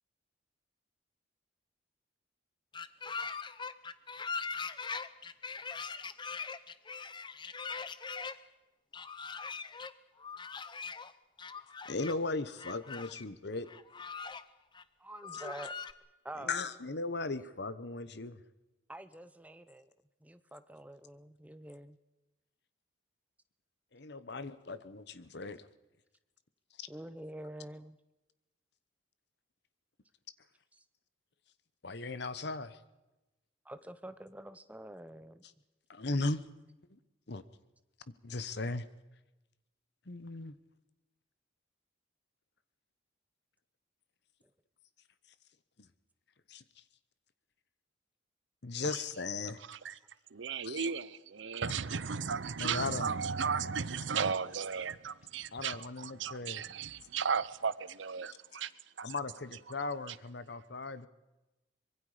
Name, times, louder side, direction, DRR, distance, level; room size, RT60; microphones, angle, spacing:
sound 1, 2.7-8.4 8.9-9.9 10.2-11.1 11.4-12.1 12.6-13.2 13.7-14.4 14.7-14.8 15.2-15.9, left 5 dB, 25° left, 0.7 m, -41 dB
voice 1, 11.9-13.7 15.4-15.5 16.4-18.4 23.9-25.7 26.8-26.9 31.8-32.8 35.9-36.4 36.9-37.0 37.3-37.4 38.2-38.8 40.1-40.5 46.5-46.6 48.6-49.6 50.6-50.9 52.6-53.1 55.5-56.6 59.0-61.1, left 3 dB, 60° left, 1.1 m, -37 dB
voice 2, 15.0-15.7 16.2-16.6 18.9-19.9 20.2-22.0 26.9-28.0 33.6-35.4, right 1 dB, 10° right, 0.8 m, -47 dB
voice 3, 50.3-58.7 59.0-59.1 60.1-60.2, right 6 dB, 70° right, 0.7 m, -35 dB
24.5 x 22.5 x 5.0 m
head